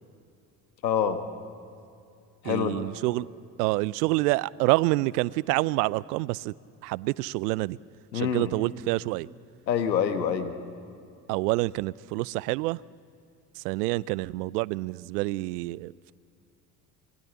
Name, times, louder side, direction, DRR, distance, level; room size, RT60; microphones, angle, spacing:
voice 1, 0.8-1.2 2.4-2.8 8.1-8.5 9.7-10.5, left 8 dB, 85° left, 1.6 m, -26 dB
voice 2, 2.4-3.3 3.6-6.5 6.8-7.8 8.1-9.3 11.3-12.8 13.6-16.1, right 21 dB, 70° right, 0.6 m, -27 dB
26.5 x 20.0 x 8.2 m
hypercardioid pair, 60°, 50 cm